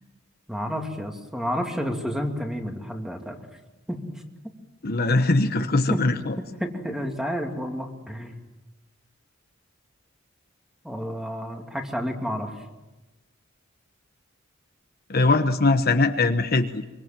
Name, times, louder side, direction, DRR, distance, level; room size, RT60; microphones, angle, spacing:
voice 1, 0.5-3.4 3.9-4.2 5.4-6.1 6.6-8.4 10.8-12.5, equal, 5° right, 3 dB, 2.6 m, -30 dB
voice 2, 4.8-6.3 15.1-16.8, left 3 dB, 50° left, 7 dB, 1.2 m, -21 dB
24.5 x 24.5 x 7.6 m, 1.1 s
head